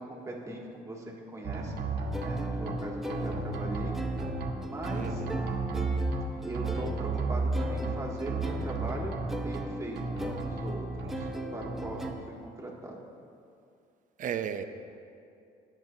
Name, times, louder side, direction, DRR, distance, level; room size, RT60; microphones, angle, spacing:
voice 1, 0.0-1.7 2.2-3.9 4.6-5.2 6.5-12.2 12.4-13.0, right 1 dB, 20° right, -2 dB, 1.8 m, -40 dB
sound 1, 1.4-2.8 3.1-4.5 4.8-6.2 6.5-7.9 8.3-9.6 10.0-11.3 11.6-12.1, right 3 dB, 65° right, 1.2 m, -33 dB
sound 2, 2.1-12.1, right 1 dB, ahead, 0.8 m, -39 dB
voice 2, 4.9-5.5 14.2-14.6, right 8 dB, 50° right, 9 dB, 0.7 m, -34 dB
20.0 x 7.5 x 2.8 m, 2.5 s
cardioid pair, 110°, 17 cm